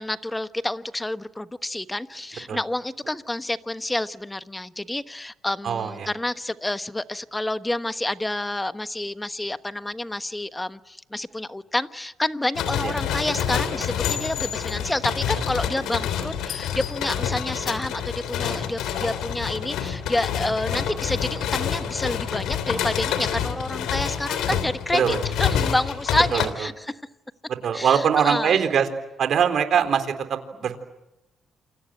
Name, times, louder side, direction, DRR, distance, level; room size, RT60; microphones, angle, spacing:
voice 1, 0.0-27.0 27.7-28.6, left 1 dB, 10° left, 11 dB, 1.2 m, -29 dB
voice 2, 5.6-6.1 12.8-12.9 20.7-20.8 24.9-25.2 26.3-26.5 27.6-28.9 29.2-30.8, right 8 dB, 60° right, 8 dB, 4.0 m, -22 dB
sound 1, 12.5-26.5, left 8 dB, 90° left, 3.2 m, -27 dB
28.5 x 25.0 x 8.0 m, 0.91 s
cardioid pair, 90°, 0 cm